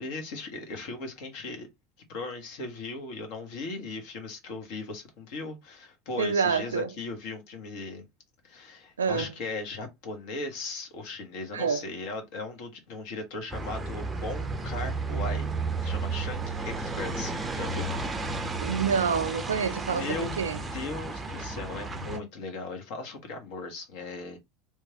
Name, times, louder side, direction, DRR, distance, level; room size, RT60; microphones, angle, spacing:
voice 1, 0.0-1.7 2.1-8.1 8.4-15.5 15.8-18.1 19.3-19.4 19.9-20.4 20.7-24.4, left 3 dB, 55° left, 0.9 m, -38 dB
voice 2, 6.2-6.9 9.0-9.3 11.5-11.8 18.6-20.6, right 6 dB, 75° right, 0.4 m, -27 dB
sound 1, 13.5-22.2, right 3 dB, 15° right, 0.6 m, -33 dB
3.1 x 2.2 x 2.8 m
figure-of-eight pair, 75°, 0 cm